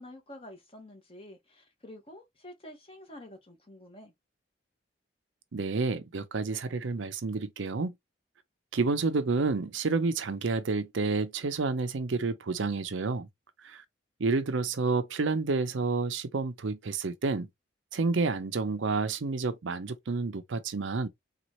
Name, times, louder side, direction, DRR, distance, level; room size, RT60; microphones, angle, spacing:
voice 1, 0.0-4.1, left 1 dB, 30° left, 1.1 m, -48 dB
voice 2, 5.5-7.9 8.7-13.3 13.6-13.8 14.2-17.5 17.9-21.1, right 4 dB, 75° right, 0.6 m, -29 dB
3.9 x 2.4 x 2.9 m
head